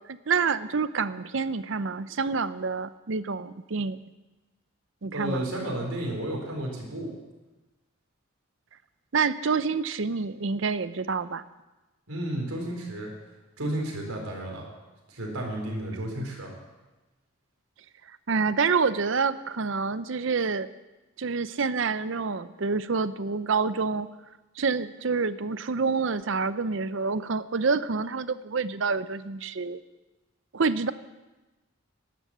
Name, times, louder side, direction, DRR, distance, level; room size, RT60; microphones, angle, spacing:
voice 1, 0.1-4.0 5.0-5.5 9.1-11.4 18.1-20.7 21.2-24.1 24.6-29.8 30.5-30.9, right 4 dB, 60° right, 14 dB, 0.6 m, -27 dB
voice 2, 5.1-7.1 12.1-13.1 13.6-14.6 15.1-16.5, right 1 dB, 85° right, 0 dB, 4.1 m, -32 dB
12.5 x 12.0 x 7.4 m, 1.1 s
head